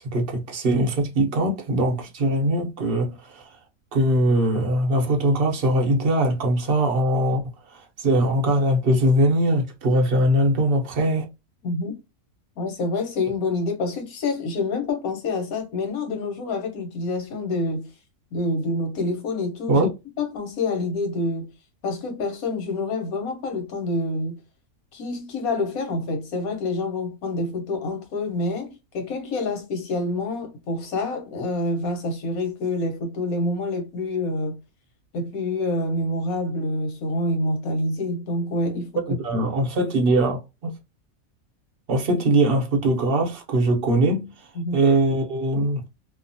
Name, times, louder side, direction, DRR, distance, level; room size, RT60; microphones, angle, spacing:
voice 1, 0.1-3.5 3.9-7.4 7.7-11.2 19.7-19.9 39.1-40.7 41.9-44.3 44.7-45.8, right 1 dB, 50° right, 0.8 m, -21 dB
voice 2, 11.6-12.0 12.6-17.9 18.3-19.9 20.2-21.5 21.8-24.3 24.9-34.6 35.1-38.9 39.4-39.5 44.5-44.8, left 2 dB, 85° left, 1.3 m, -27 dB
2.8 x 2.1 x 2.5 m
omnidirectional pair, 1.5 m